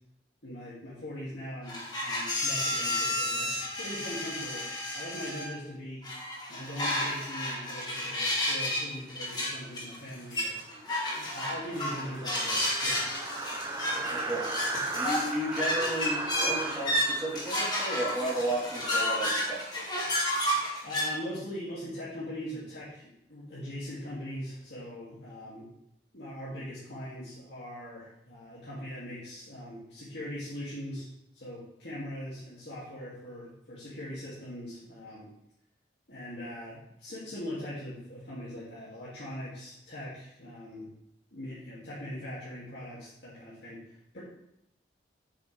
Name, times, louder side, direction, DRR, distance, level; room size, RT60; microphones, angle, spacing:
voice 1, 0.4-6.0 6.5-10.5 11.3-13.3 20.8-25.7 26.1-31.1 31.3-35.3 36.1-40.9 41.3-44.2, equal, 75° left, -10 dB, 2.4 m, -41 dB
sound 1, 1.7-5.5 6.0-8.8 9.1-21.0, left 1 dB, 25° left, 1.8 m, -31 dB
sound 2, 9.9-10.0 10.4-10.5 10.8-10.9 11.1-19.8, right 3 dB, 20° right, 0.7 m, -38 dB
voice 2, 13.7-14.5 14.9-19.7, right 1 dB, 5° right, -11 dB, 3.4 m, -34 dB
8.8 x 7.2 x 3.4 m, 0.80 s
head